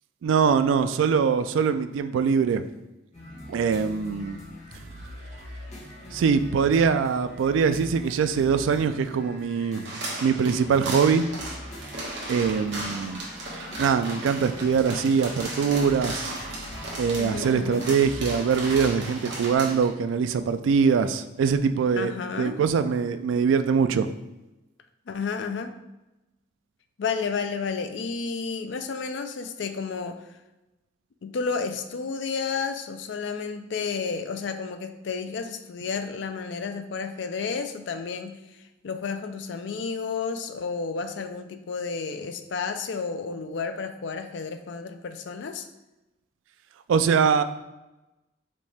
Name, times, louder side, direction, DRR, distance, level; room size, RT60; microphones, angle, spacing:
voice 1, 0.2-2.7 3.5-4.4 6.1-9.8 10.2-11.3 12.3-13.2 13.5-16.4 17.0-22.1 22.4-24.1 46.9-47.4, right 6 dB, 80° right, 10 dB, 0.3 m, -23 dB
sound 1, 3.1-19.5, left 1 dB, 35° left, 1.0 m, -43 dB
sound 2, 9.9-19.9, right 1 dB, 65° right, 1.2 m, -36 dB
voice 2, 17.2-17.9 21.9-22.6 25.1-25.7 27.0-30.2 31.2-38.4 38.8-45.7, left 5 dB, 65° left, 8 dB, 0.4 m, -31 dB
5.2 x 2.8 x 3.3 m, 1.0 s
head